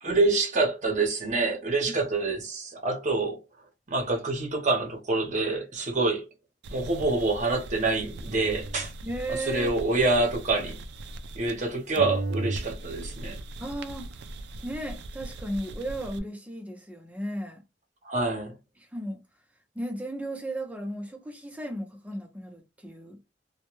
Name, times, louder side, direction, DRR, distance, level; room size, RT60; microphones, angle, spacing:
voice 1, 0.0-3.4 3.9-6.3 6.7-8.9 9.3-10.8 11.3-13.4 18.0-18.5, right 3 dB, 40° right, 0.8 m, -26 dB
sound 1, 6.6-11.7 12.0-16.2, right 2 dB, 65° right, 0.3 m, -38 dB
voice 2, 9.0-9.8 13.6-14.2 14.6-17.6 18.8-19.2 19.7-23.3, right 1 dB, 10° right, 0.6 m, -35 dB
2.2 x 2.1 x 2.9 m
head